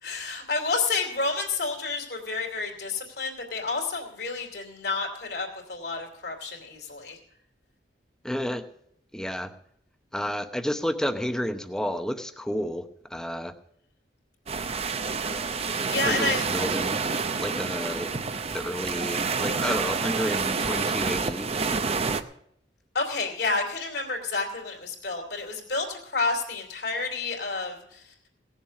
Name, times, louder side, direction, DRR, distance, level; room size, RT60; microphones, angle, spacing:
voice 1, 0.0-7.2 15.6-16.4 22.9-28.0, left 3 dB, 65° left, 2 dB, 2.7 m, -30 dB
voice 2, 8.2-8.6 9.1-9.5 10.1-12.9 13.1-13.5 16.0-17.0 17.4-18.2 18.5-21.5, equal, 5° left, 8 dB, 0.8 m, -30 dB
sound 1, 14.5-22.2, right 4 dB, 35° right, 0.6 m, -28 dB
17.5 x 7.2 x 6.3 m, 0.71 s
head